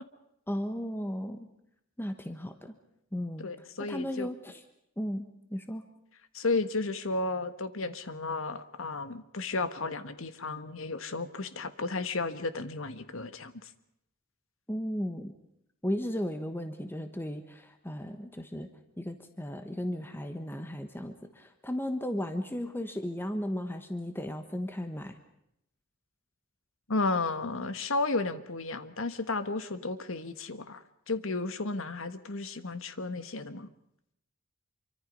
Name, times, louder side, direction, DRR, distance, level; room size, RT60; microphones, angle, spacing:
voice 1, 0.5-1.5 2.0-2.7 3.1-4.6 5.0-5.2 5.5-5.8 14.7-15.3 15.8-18.7 19.0-25.2, equal, 10° left, 7 dB, 1.3 m, -35 dB
voice 2, 3.4-4.3 6.3-13.5 26.9-33.7, left 3 dB, 65° left, 12 dB, 1.4 m, -33 dB
26.0 x 24.5 x 5.4 m, 0.78 s
head